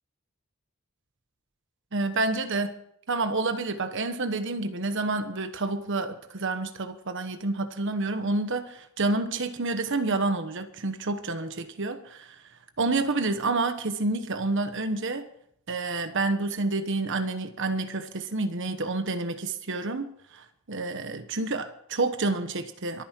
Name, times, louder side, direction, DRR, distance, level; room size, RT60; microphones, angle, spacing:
voice 1, 1.9-2.8 3.1-12.4 12.8-15.2 15.7-23.0, right 3 dB, 60° right, 9 dB, 1.2 m, -29 dB
24.0 x 9.6 x 4.5 m, 0.69 s
head